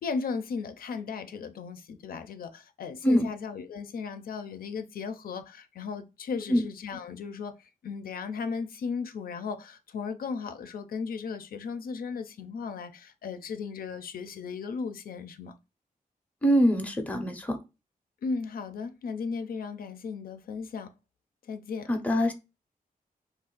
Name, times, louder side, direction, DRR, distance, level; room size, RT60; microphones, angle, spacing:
voice 1, 0.0-15.5 18.2-20.9 21.5-21.9, left 5 dB, 85° left, 0.4 m, -36 dB
voice 2, 16.4-17.6 21.9-22.3, equal, 10° left, 0.5 m, -24 dB
2.5 x 2.3 x 3.7 m
wide cardioid pair, 130°, 15 cm